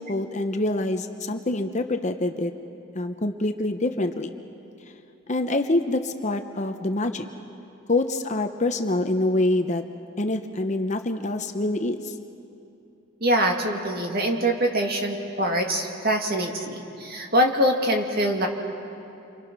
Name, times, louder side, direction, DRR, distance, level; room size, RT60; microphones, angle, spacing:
voice 1, 0.0-2.5 2.9-4.3 5.3-7.3 7.9-9.8 10.2-12.1, left 2 dB, 35° left, 7 dB, 0.8 m, -25 dB
voice 2, 13.2-18.5, equal, 45° right, 2 dB, 2.2 m, -24 dB
30.0 x 25.0 x 6.1 m, 2.7 s
head